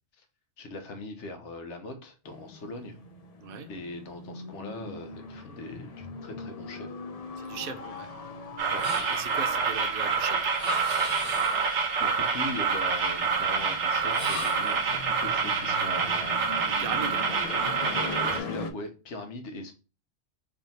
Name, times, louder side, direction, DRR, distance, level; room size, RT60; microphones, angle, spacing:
voice 1, 0.6-3.0 3.7-6.9 8.7-8.8 12.0-16.4 17.3-17.4 17.9-19.7, left 2 dB, 85° left, 5 dB, 1.1 m, -40 dB
sound 1, 2.3-18.7, left 4 dB, 50° left, 0.5 m, -42 dB
voice 2, 3.4-3.7 7.4-8.1 9.1-10.5 16.7-17.2, right 7 dB, 60° right, 7 dB, 0.7 m, -37 dB
sound 2, 8.6-18.4, right 5 dB, 80° right, 1.1 m, -27 dB
sound 3, 8.8-9.6 10.5-11.8 14.1-14.8, left 1 dB, 30° left, 1.1 m, -36 dB
3.4 x 2.7 x 4.1 m, 0.33 s
omnidirectional pair, 1.2 m